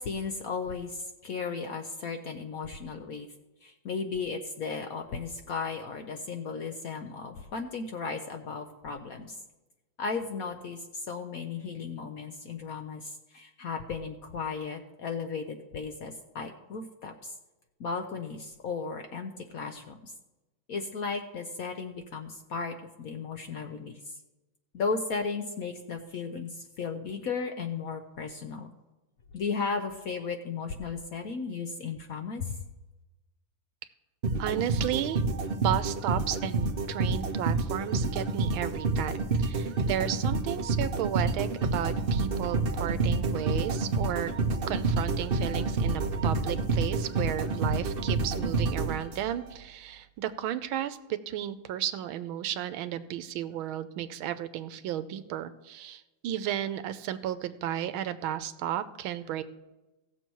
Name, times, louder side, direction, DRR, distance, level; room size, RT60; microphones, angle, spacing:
voice 1, 0.0-3.3 3.6-9.4 10.0-17.3 17.8-20.1 20.7-24.2 24.7-28.7 29.3-32.6, left 5 dB, 65° left, 6 dB, 0.9 m, -35 dB
sound 1, 34.2-49.5, right 3 dB, 55° right, 0.6 m, -28 dB
voice 2, 34.4-35.2 35.5-44.3 44.7-59.4, right 11 dB, 90° right, 12 dB, 1.5 m, -33 dB
17.0 x 7.1 x 4.6 m, 1.1 s
omnidirectional pair, 2.2 m